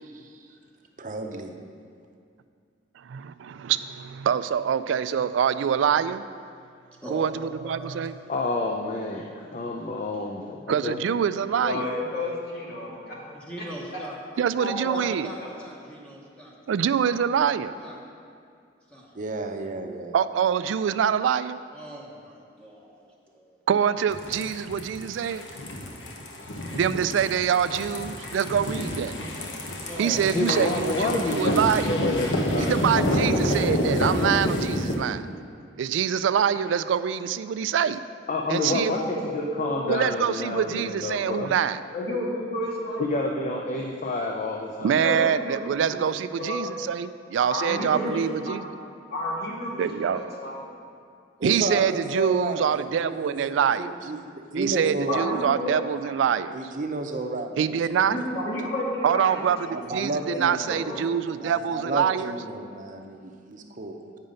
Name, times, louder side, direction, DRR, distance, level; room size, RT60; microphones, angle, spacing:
voice 1, 0.1-0.5 1.0-1.5 19.1-20.1 51.4-55.2 56.5-58.2 59.7-60.9 61.4-64.0, right 2 dB, 45° right, 4 dB, 0.6 m, -32 dB
voice 2, 3.0-6.3 7.1-8.1 10.7-11.9 14.4-15.3 16.7-17.7 20.1-21.6 23.7-25.4 26.7-29.1 30.0-32.0 32.6-35.2 35.8-38.0 38.5-38.9 39.9-41.8 44.8-48.7 49.8-50.2 51.4-53.9 54.6-56.6 57.6-58.2 59.0-59.6 59.9-62.3, right 8 dB, 85° right, 13 dB, 0.3 m, -25 dB
voice 3, 7.0-8.1 13.3-14.2 14.9-16.5 17.8-18.0 18.9-19.1 21.7-23.6 29.8-30.9 38.7-39.0 45.9-46.0 48.0-48.3, equal, 5° left, -4 dB, 0.9 m, -40 dB
voice 4, 8.3-11.0 30.3-33.2 38.3-39.0 39.3-41.5 43.0-45.0, left 2 dB, 40° left, 0 dB, 0.5 m, -29 dB
voice 5, 11.6-13.2 13.6-13.7 13.9-14.0 14.6-15.0 15.4-15.5 38.9-40.3 40.5-40.8 41.9-43.3 43.7-43.8 45.0-45.7 46.4-46.6 47.5-48.2 48.5-48.6 49.1-50.7 55.1-56.1 58.0-59.7 60.0-61.0, left 1 dB, 60° left, -4 dB, 1.8 m, -32 dB
sound 1, 24.1-34.9, left 1 dB, 85° left, 1.0 m, -28 dB
8.9 x 5.5 x 5.1 m, 2.3 s
head